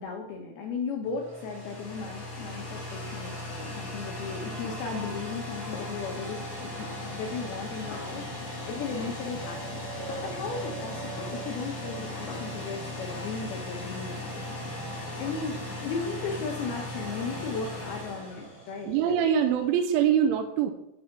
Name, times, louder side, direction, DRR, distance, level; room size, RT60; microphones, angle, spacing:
voice 1, 0.0-8.2 8.7-9.8 10.2-14.4 15.2-19.0, left 5 dB, 75° left, 1 dB, 2.3 m, -36 dB
sound 1, 1.0-19.1, left 2 dB, 35° left, 4.3 m, -38 dB
sound 2, 1.1-3.6 4.3-19.0, right 7 dB, 70° right, 2.3 m, -48 dB
Snare drum, 4.6-5.5 5.7-6.5 6.8-8.6 9.0-10.7 11.2-12.8 13.1-13.4, left 5 dB, 55° left, 2.0 m, -46 dB
voice 2, 18.9-20.7, right 8 dB, 85° right, 5 dB, 3.0 m, -24 dB
12.5 x 4.7 x 5.9 m, 0.85 s
omnidirectional pair, 5.6 m